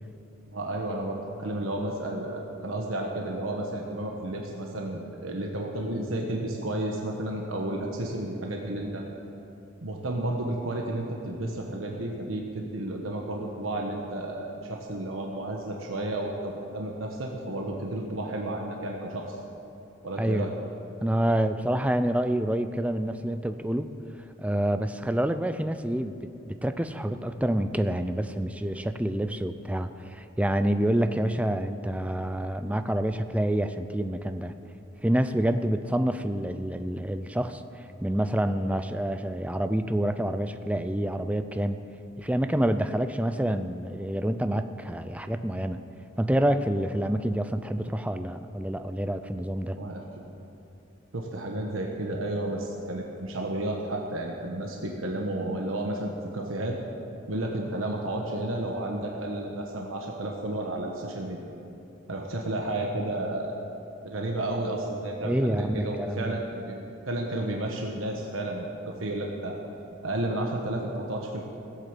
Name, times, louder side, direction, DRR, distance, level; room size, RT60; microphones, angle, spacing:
voice 1, 0.5-9.0 9.8-19.4 20.0-20.5 49.8-50.0 51.1-56.8 57.3-61.4 62.1-63.6 64.0-66.8 67.1-69.6 70.0-71.5, right 1 dB, 90° right, 0 dB, 1.2 m, -32 dB
voice 2, 20.2-20.5 21.0-23.9 24.4-26.2 26.5-34.5 35.0-41.8 42.2-45.8 46.2-49.8 65.2-66.4, right 1 dB, 5° right, 9 dB, 0.4 m, -27 dB
16.5 x 8.3 x 7.4 m, 2.7 s
head